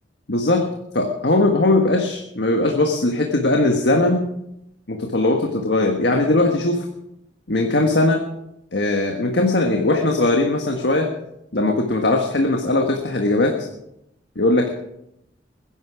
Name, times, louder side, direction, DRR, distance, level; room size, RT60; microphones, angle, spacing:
voice 1, 0.3-0.6 0.9-4.2 4.9-6.9 7.5-8.2 8.7-11.1 11.5-13.7 14.3-14.7, left 2 dB, 70° left, 2 dB, 1.5 m, -19 dB
21.0 x 11.0 x 4.8 m, 0.83 s
head